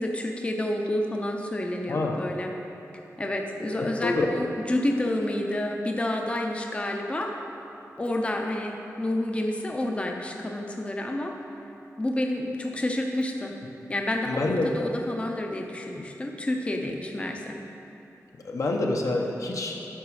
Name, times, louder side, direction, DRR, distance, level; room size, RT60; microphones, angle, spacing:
voice 1, 0.0-2.5 3.2-7.3 8.0-11.3 12.0-13.5 13.9-17.6, left 1 dB, 20° left, 2 dB, 0.6 m, -29 dB
voice 2, 1.9-2.2 3.8-4.3 14.2-14.9 18.4-19.8, left 2 dB, 65° left, 1 dB, 0.9 m, -27 dB
9.0 x 5.8 x 4.8 m, 3.0 s
wide cardioid pair, 125°, 6 cm